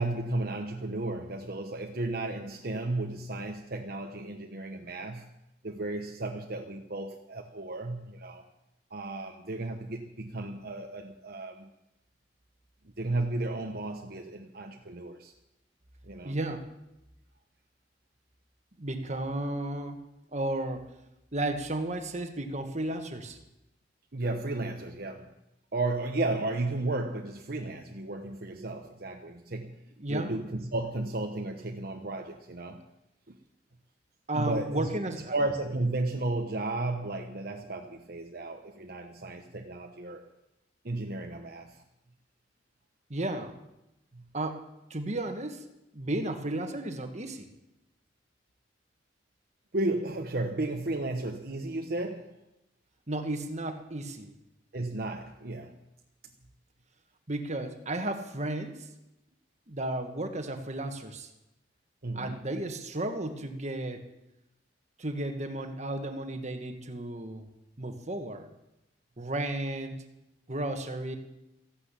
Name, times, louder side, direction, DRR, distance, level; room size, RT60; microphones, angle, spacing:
voice 1, 0.0-5.3 5.6-8.4 8.9-11.7 13.0-15.3 16.0-16.3 24.1-25.3 25.7-29.7 30.1-32.8 33.3-33.4 34.3-34.9 35.3-40.3 40.8-41.8 44.1-44.3 49.7-52.4 54.7-55.8 62.0-62.5, right 2 dB, 55° right, 3 dB, 1.1 m, -33 dB
voice 2, 16.2-16.7 18.8-20.0 20.3-20.9 21.3-23.4 30.0-30.3 34.3-35.3 43.1-43.6 44.3-45.6 45.9-47.5 53.1-54.3 57.3-58.8 59.7-61.3 62.1-64.0 65.0-67.5 67.8-68.5 69.2-70.0 70.5-71.2, right 1 dB, 40° right, 6 dB, 1.6 m, -33 dB
14.5 x 12.0 x 8.4 m, 0.91 s
head